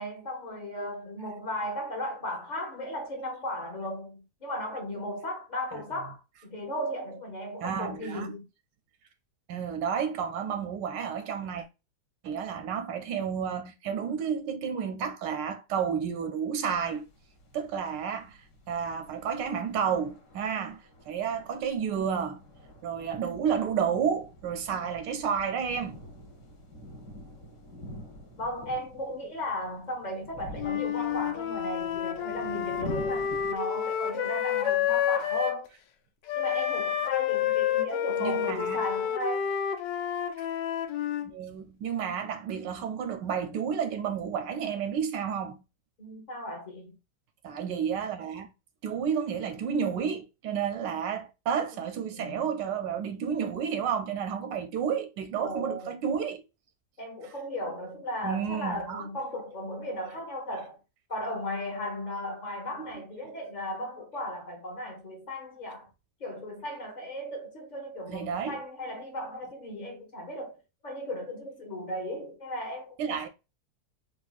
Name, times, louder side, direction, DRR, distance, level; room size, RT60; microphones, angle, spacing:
voice 1, 0.0-8.5 28.4-35.7 36.3-39.5 46.0-47.0 51.7-51.8 52.1-52.5 55.4-55.9 57.0-60.8 61.1-65.9 66.2-73.0, left 1 dB, 30° left, 0.9 m, -36 dB
voice 2, 7.6-8.3 9.5-11.7 12.2-17.1 17.5-18.4 18.7-22.4 22.8-26.0 38.2-38.8 41.2-45.6 47.4-48.5 48.8-56.4 58.2-59.1 68.1-68.6 73.0-73.3, right 7 dB, 90° right, 1.3 m, -31 dB
sound 1, 16.6-33.6, left 1 dB, 50° left, 1.2 m, -47 dB
Wind instrument woodwind instrument, 30.6-35.6 36.3-41.3, left 9 dB, 90° left, 1.2 m, -29 dB
4.0 x 2.6 x 2.4 m
omnidirectional pair, 1.8 m